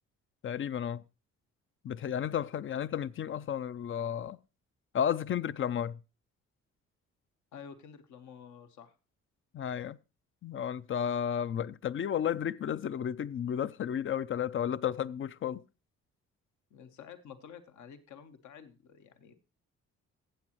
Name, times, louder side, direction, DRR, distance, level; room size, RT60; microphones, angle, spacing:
voice 1, 0.4-1.0 1.8-4.4 4.9-6.0 9.5-10.0 10.4-15.6, left 9 dB, 45° left, 0.5 m, -32 dB
voice 2, 7.5-8.9 16.7-19.4, left 7 dB, 70° left, 1.1 m, -50 dB
15.0 x 7.6 x 3.0 m
supercardioid pair, 55°, 30 cm